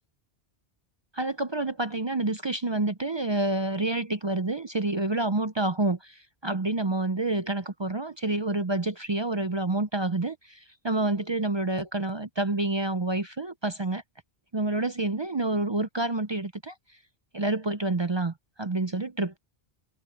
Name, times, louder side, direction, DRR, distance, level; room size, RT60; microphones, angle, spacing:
voice 1, 1.1-14.0 14.5-16.7 17.3-18.3 18.6-19.4, right 2 dB, 30° right, 0.5 m, -28 dB
omnidirectional pair, 1.1 m